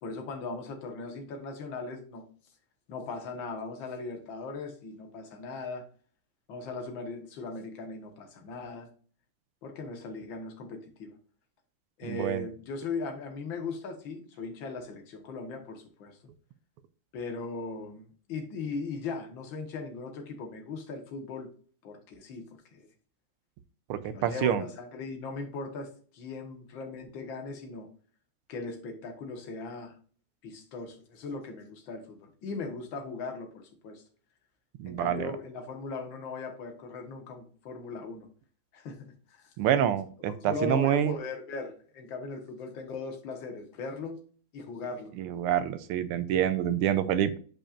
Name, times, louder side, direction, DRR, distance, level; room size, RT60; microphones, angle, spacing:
voice 1, 0.0-2.2 2.9-5.9 6.5-8.9 9.6-11.1 12.0-16.2 17.1-18.0 18.3-21.5 21.8-22.9 24.0-27.9 28.5-30.0 30.4-34.0 34.8-38.3 38.7-39.5 40.3-44.2 44.5-45.1, left 3 dB, 65° left, 2.0 m, -38 dB
voice 2, 12.1-12.5 23.9-24.6 34.8-35.3 39.6-41.1 45.2-47.4, right 10 dB, 90° right, 1.6 m, -27 dB
8.6 x 5.4 x 2.5 m
omnidirectional pair, 2.4 m